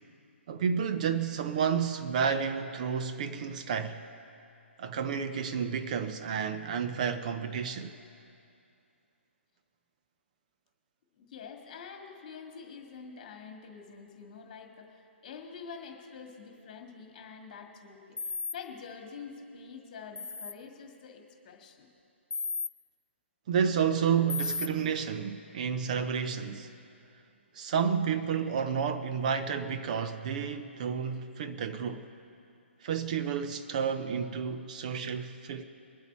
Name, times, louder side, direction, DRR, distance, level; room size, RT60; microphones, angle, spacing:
voice 1, 0.5-4.0 4.8-7.9 23.5-26.7 27.5-32.1 32.8-35.6, right 7 dB, 35° right, 0.6 m, -30 dB
voice 2, 11.2-21.9, left 5 dB, 35° left, 2.0 m, -46 dB
sound 1, 18.2-18.5 20.2-20.5 22.3-22.7 24.3-24.7, left 4 dB, 70° left, 0.6 m, -33 dB
22.5 x 8.1 x 4.4 m
figure-of-eight pair, 130°, 7 cm